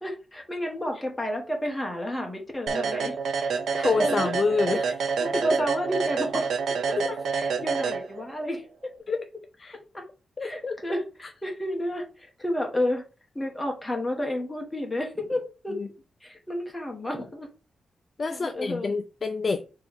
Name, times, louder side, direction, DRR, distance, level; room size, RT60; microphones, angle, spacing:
voice 1, 0.0-3.2 3.7-4.3 4.7-4.8 5.2-6.5 6.9-8.9 9.9-10.0 10.4-13.0 13.3-15.8 16.2-17.5 18.3-18.9, equal, 10° left, 1.1 m, -31 dB
sound 1, 2.7-8.5, right 5 dB, 70° right, 0.5 m, -28 dB
voice 2, 3.0-4.9 5.3-5.4 7.0-7.2 9.1-9.2 9.6-9.8 10.4-10.8 15.7-15.9 18.2-19.6, left 4 dB, 35° left, 0.3 m, -28 dB
3.5 x 3.1 x 4.7 m
wide cardioid pair, 155°, 0 cm